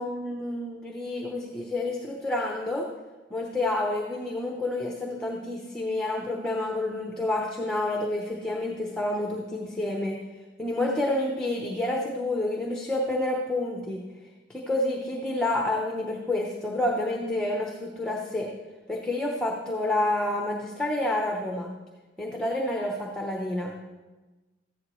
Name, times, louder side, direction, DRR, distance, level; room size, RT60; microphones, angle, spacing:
voice 1, 0.0-2.8 3.3-10.2 10.6-14.0 14.5-18.5 18.9-21.7 22.2-23.7, left 1 dB, 5° left, 0 dB, 0.8 m, -29 dB
13.5 x 10.5 x 3.1 m, 1.2 s
head